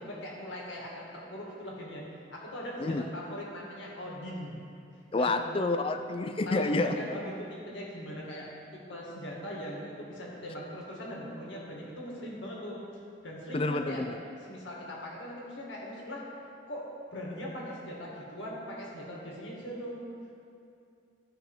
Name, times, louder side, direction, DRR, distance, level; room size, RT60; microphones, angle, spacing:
voice 1, 0.0-2.0 2.3-4.6 5.1-5.4 6.5-12.8 13.2-14.0 14.5-16.3 16.7-20.0, equal, 75° left, -4 dB, 2.1 m, -40 dB
voice 2, 5.1-7.0 13.5-14.1, left 2 dB, 30° left, 8 dB, 0.4 m, -28 dB
15.0 x 5.7 x 3.7 m, 2.5 s
head